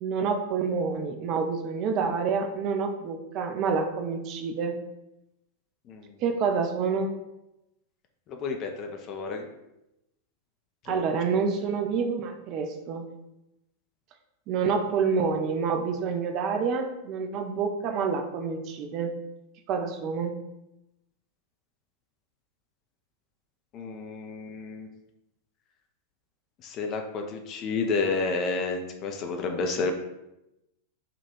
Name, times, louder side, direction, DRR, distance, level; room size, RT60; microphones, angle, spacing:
voice 1, 0.0-4.7 6.2-7.1 10.9-13.0 14.5-19.2 19.7-20.3, right 5 dB, 40° right, 5 dB, 0.5 m, -28 dB
voice 2, 8.3-9.5 10.9-11.0 23.7-24.9 26.6-29.9, left 4 dB, 35° left, 4 dB, 0.5 m, -30 dB
3.7 x 2.3 x 4.3 m, 0.90 s
figure-of-eight pair, 90°, 0 cm